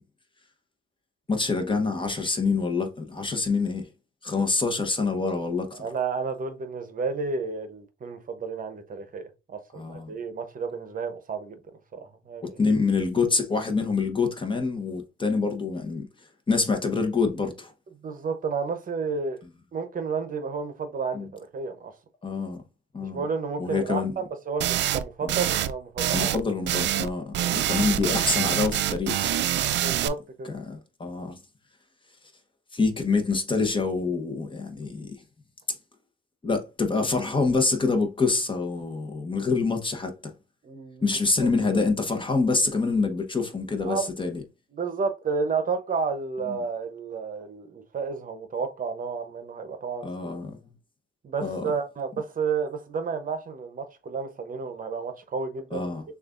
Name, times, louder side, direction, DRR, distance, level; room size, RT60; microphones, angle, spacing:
voice 1, 1.3-3.9 4.2-5.8 9.7-10.1 12.6-16.0 16.5-17.7 21.1-21.3 22.2-22.6 22.9-23.2 23.6-24.1 25.2-25.3 26.1-29.4 30.4-31.4 32.7-35.2 36.4-40.3 41.0-44.4 46.5-46.6 50.0-50.5 51.4-51.7 55.7-56.0, left 4 dB, 25° left, 0.9 m, -26 dB
voice 2, 5.7-11.6 11.9-12.6 18.0-19.4 19.7-21.9 23.0-26.3 27.4-27.6 29.6-30.5 40.6-41.1 41.4-41.5 43.8-44.1 44.7-50.3 51.2-56.0, right 5 dB, 45° right, 0.8 m, -31 dB
sound 1, 24.6-25.0 25.3-25.7 26.0-26.4 26.7-27.1 27.3-30.1, right 12 dB, 65° right, 0.4 m, -25 dB
6.4 x 2.4 x 2.5 m
cardioid pair, 90°, 20 cm